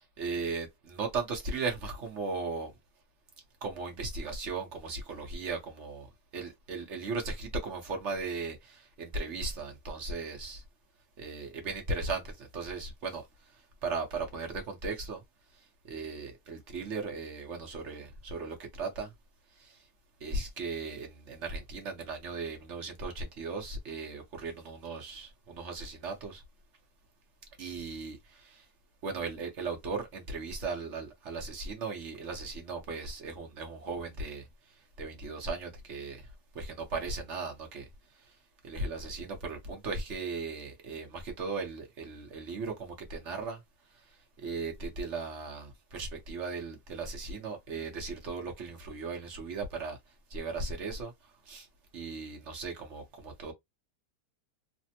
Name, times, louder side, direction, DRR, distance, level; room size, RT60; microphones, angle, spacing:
voice 1, 0.2-2.7 3.6-10.6 11.2-15.2 15.5-19.1 19.5-19.9 20.2-26.4 27.6-28.7 29.0-43.6 43.9-51.7 51.9-53.5, right 4 dB, 50° right, 0.9 m, -37 dB
3.2 x 2.0 x 2.7 m
omnidirectional pair, 1.9 m